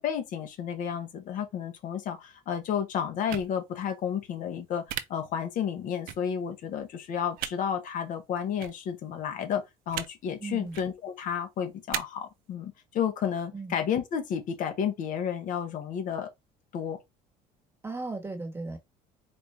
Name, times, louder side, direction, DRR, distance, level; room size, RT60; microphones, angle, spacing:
voice 1, 0.0-4.8 5.1-16.3 16.7-17.0, left 8 dB, 55° left, 1.0 m, -31 dB
sound 1, 3.3-3.5 4.9-5.0 6.1-6.2 7.4-7.5 8.6-8.7 9.9-10.1 10.6-10.9 11.9-12.0, right 13 dB, 65° right, 0.5 m, -34 dB
voice 2, 10.4-10.8 13.5-13.7 17.8-18.8, right 3 dB, 15° right, 1.1 m, -36 dB
4.4 x 2.5 x 3.2 m
cardioid pair, 115°, 16 cm